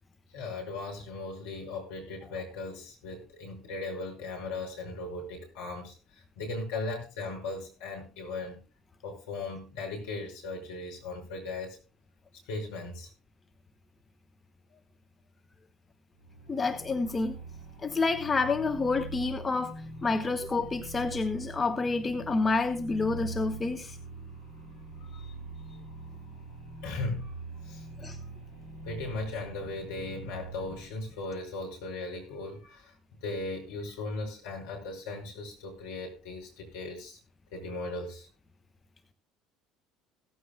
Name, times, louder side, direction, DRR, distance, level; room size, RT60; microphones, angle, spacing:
voice 1, 0.3-6.0 6.4-8.6 9.0-11.8 12.5-13.1 25.0-25.2 26.8-27.3 27.7-27.8 28.9-32.9 33.2-37.2 37.5-38.3, left 3 dB, 70° left, 1 dB, 5.6 m, -37 dB
sound 1, 16.2-30.9, right 3 dB, 85° left, 6.7 m, -43 dB
voice 2, 16.5-17.3 17.8-24.0 28.0-28.2, left 3 dB, 25° left, 8 dB, 1.2 m, -29 dB
17.0 x 15.0 x 2.2 m, 0.32 s
figure-of-eight pair, 60°, 0 cm